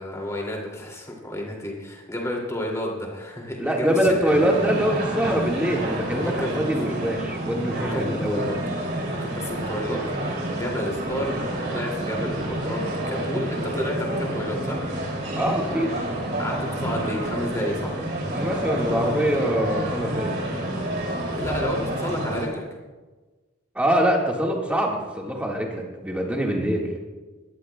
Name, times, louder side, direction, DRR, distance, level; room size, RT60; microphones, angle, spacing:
voice 1, 0.0-4.2 4.5-4.6 6.4-6.5 7.9-8.6 9.1-10.0 10.5-11.3 11.7-12.8 13.1-14.8 16.4-18.0 21.3-22.6, left 1 dB, 15° left, -1 dB, 2.4 m, -31 dB
voice 2, 3.6-8.4 15.4-15.9 18.3-20.3 23.8-26.9, equal, 5° right, -1 dB, 1.6 m, -24 dB
sound 1, 4.3-22.5, right 1 dB, 50° right, 2.6 m, -29 dB
20.0 x 14.0 x 2.2 m, 1.3 s
head